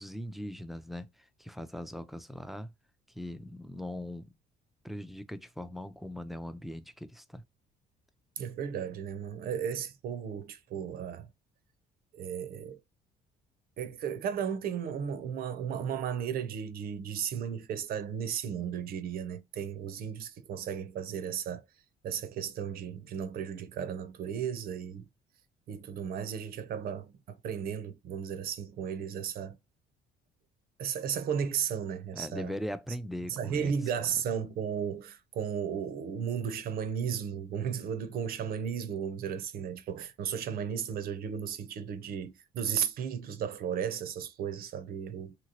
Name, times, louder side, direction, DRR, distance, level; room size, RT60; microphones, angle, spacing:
voice 1, 0.0-2.7 3.1-4.3 4.8-7.4 32.1-33.7, left 1 dB, ahead, 0.3 m, -40 dB
voice 2, 8.4-11.3 12.1-12.8 13.8-21.6 22.0-25.0 25.7-29.6 30.8-32.6 33.3-45.4, right 8 dB, 60° right, 0.5 m, -34 dB
2.9 x 2.8 x 2.7 m
cardioid pair, 110°, 17 cm